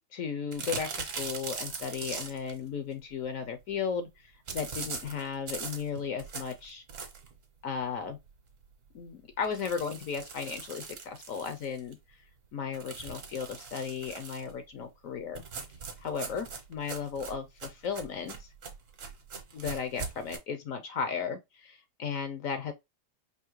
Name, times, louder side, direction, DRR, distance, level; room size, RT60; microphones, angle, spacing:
voice 1, 0.1-6.8 7.6-8.2 8.9-12.0 12.5-15.4 16.0-18.5 19.5-22.7, left 6 dB, 65° left, 0.9 m, -35 dB
sound 1, 0.5-2.6 4.5-7.4 7.8-7.9 8.3-8.4 8.7-8.8 9.4-11.9 12.7-14.5 15.3-20.4, right 5 dB, 55° right, 1.2 m, -41 dB
4.7 x 2.8 x 3.0 m
omnidirectional pair, 1.8 m